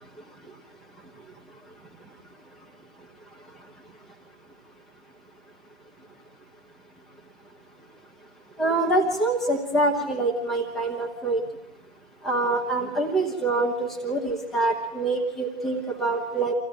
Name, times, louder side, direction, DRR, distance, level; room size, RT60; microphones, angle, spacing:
voice 1, 8.6-11.4 12.2-16.5, right 2 dB, ahead, 0 dB, 1.0 m, -25 dB
26.0 x 15.5 x 9.0 m, 0.93 s
figure-of-eight pair, 150°, 34 cm